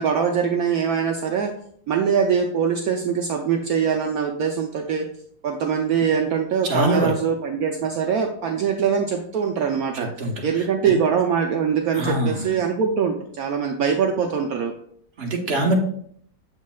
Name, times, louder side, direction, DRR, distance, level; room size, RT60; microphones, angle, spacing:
voice 1, 0.0-1.5 1.9-5.1 5.4-10.1 10.4-14.7, right 7 dB, 70° right, 2 dB, 1.0 m, -23 dB
voice 2, 6.6-7.1 10.2-10.9 11.9-12.6 15.2-15.8, right 1 dB, 40° right, 1 dB, 1.2 m, -24 dB
7.3 x 6.3 x 2.3 m, 0.65 s
omnidirectional pair, 1.8 m